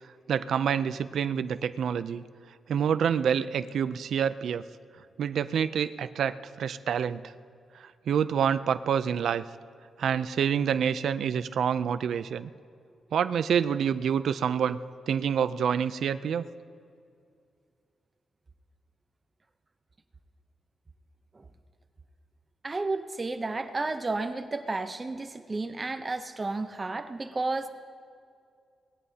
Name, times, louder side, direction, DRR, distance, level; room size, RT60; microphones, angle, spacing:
voice 1, 0.3-2.2 2.7-4.6 5.2-7.2 7.8-9.5 10.0-12.5 13.1-14.8 15.1-16.5, right 8 dB, 70° right, 13 dB, 0.4 m, -27 dB
voice 2, 22.6-27.7, right 3 dB, 20° right, 9 dB, 0.7 m, -32 dB
24.0 x 19.0 x 2.8 m, 2.3 s
wide cardioid pair, 150°, 0 cm